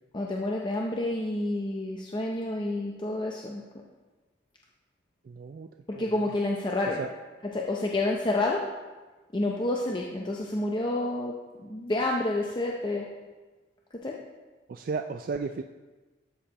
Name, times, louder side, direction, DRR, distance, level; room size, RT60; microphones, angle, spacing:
voice 1, 0.1-3.6 5.9-7.0 7.5-8.7 9.3-11.4 11.6-13.1 13.9-14.2, left 2 dB, 25° left, -1 dB, 0.6 m, -29 dB
voice 2, 5.2-5.7 5.9-6.2 7.0-7.1 14.7-15.6, right 4 dB, 50° right, 6 dB, 0.3 m, -34 dB
13.0 x 6.5 x 2.9 m, 1.3 s
head